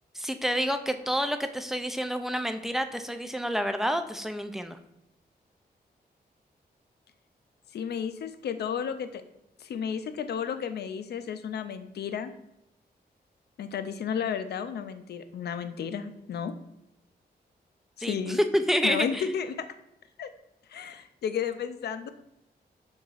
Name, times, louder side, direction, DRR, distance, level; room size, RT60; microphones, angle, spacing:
voice 1, 0.1-4.8 18.0-19.2, equal, ahead, 8 dB, 0.3 m, -28 dB
voice 2, 7.7-9.2 9.6-12.3 13.6-16.5 18.0-18.4 18.8-19.7 20.2-20.3 20.7-22.1, left 7 dB, 80° left, 10 dB, 0.4 m, -32 dB
5.4 x 3.8 x 2.4 m, 0.84 s
wide cardioid pair, 100°, 17 cm